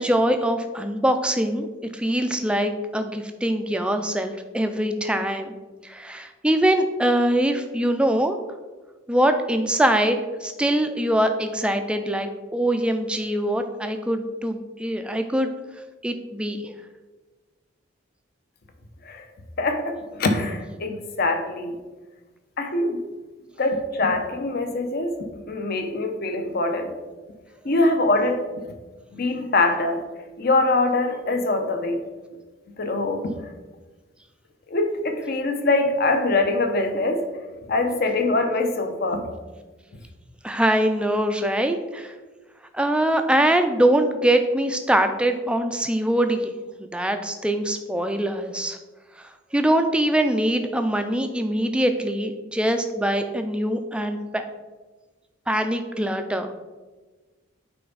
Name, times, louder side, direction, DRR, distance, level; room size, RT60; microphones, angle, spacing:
voice 1, 0.0-1.7 1.9-5.5 5.8-8.4 9.1-15.5 16.0-16.7 40.4-42.1 42.7-46.5 46.8-48.8 49.2-54.5 55.5-56.5, right 1 dB, 5° right, 7 dB, 0.3 m, -23 dB
voice 2, 19.6-21.8 22.6-23.0 23.6-25.2 25.5-26.9 27.6-28.7 29.1-30.0 30.4-32.0 32.8-33.3 34.7-37.3 37.7-39.3, left 2 dB, 45° left, 6 dB, 0.7 m, -23 dB
8.8 x 3.4 x 3.9 m, 1.3 s
head